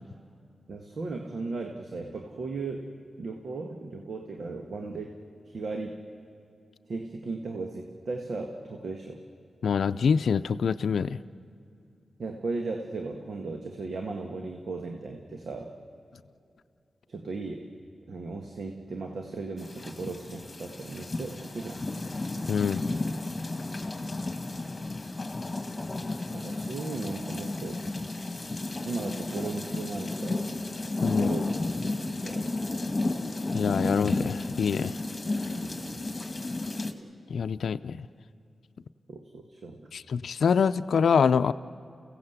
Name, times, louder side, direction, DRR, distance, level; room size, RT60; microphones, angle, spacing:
voice 1, 0.7-5.2 5.5-6.0 6.9-9.2 12.2-15.7 17.1-17.7 18.1-21.8 26.3-27.8 28.8-30.5 31.1-31.5 31.8-32.6 35.5-36.1 39.1-39.9, right 3 dB, 70° right, 3 dB, 1.7 m, -36 dB
voice 2, 9.6-11.2 22.5-22.8 31.0-31.3 33.5-34.9 37.3-38.0 39.9-41.5, left 6 dB, 80° left, 12 dB, 0.5 m, -25 dB
sound 1, 19.6-36.9, left 2 dB, 30° left, 1.9 m, -33 dB
30.0 x 16.5 x 8.1 m, 2.5 s
cardioid pair, 60°, 0 cm